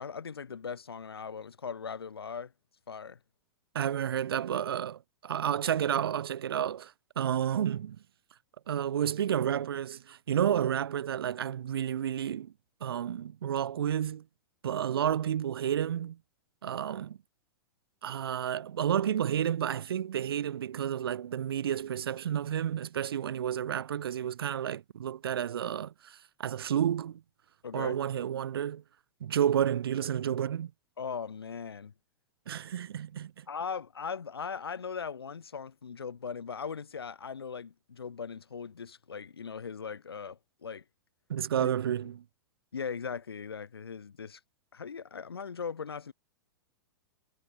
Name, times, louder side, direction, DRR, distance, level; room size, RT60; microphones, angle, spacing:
voice 1, 0.0-2.5 2.9-3.2 27.6-28.0 31.0-31.9 33.5-40.8 41.5-41.7 42.7-44.4 44.7-46.1, left 6 dB, 85° left, 2.4 m, -39 dB
voice 2, 3.7-8.0 8.7-12.5 12.8-14.2 14.6-16.2 16.6-17.2 18.0-27.2 27.7-28.8 29.2-30.7 32.5-33.5 41.3-42.2, right 9 dB, 75° right, 0.6 m, -31 dB
hypercardioid pair, 105°, 13 cm